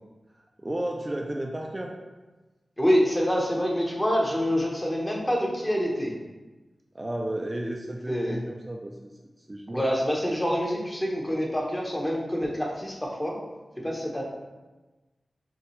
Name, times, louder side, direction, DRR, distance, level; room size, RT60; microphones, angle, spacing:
voice 1, 0.3-2.0 6.9-9.1 9.4-9.9, right 1 dB, 30° right, 0 dB, 0.4 m, -33 dB
voice 2, 2.8-6.1 8.1-8.4 9.7-13.4 13.8-14.2, equal, 15° left, -2 dB, 0.9 m, -26 dB
5.7 x 2.3 x 3.1 m, 1.2 s
cardioid pair, 55°, 0 cm